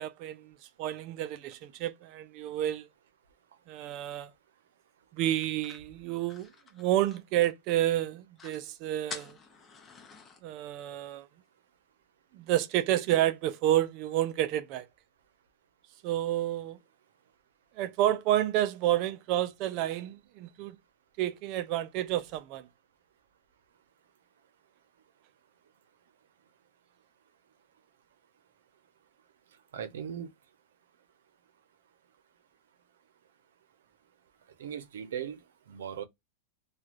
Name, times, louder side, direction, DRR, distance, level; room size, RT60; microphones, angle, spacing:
voice 1, 0.0-2.9 3.7-4.3 5.1-9.4 10.4-11.3 12.3-14.9 16.0-16.8 17.8-20.8 21.2-22.7, right 13 dB, 45° right, 0.4 m, -30 dB
sound 1, 5.4-7.8 8.1-8.2 8.4-8.6 9.1-10.4, left 5 dB, 20° left, 0.7 m, -47 dB
voice 2, 29.7-30.3 34.6-35.4 35.7-36.0, right 8 dB, 85° right, 0.6 m, -38 dB
3.1 x 2.3 x 2.5 m
supercardioid pair, 145°, 0 cm